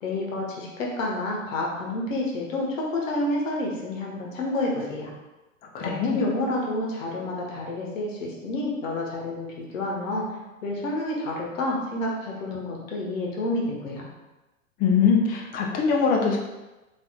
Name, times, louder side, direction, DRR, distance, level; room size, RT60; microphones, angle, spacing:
voice 1, 0.0-5.1 5.8-10.3 10.6-14.1, left 2 dB, 65° left, -2 dB, 1.2 m, -29 dB
voice 2, 5.6-6.2 14.8-16.4, left 5 dB, 20° left, 0 dB, 0.5 m, -22 dB
4.2 x 3.5 x 2.3 m, 1.0 s
hypercardioid pair, 105°, 42 cm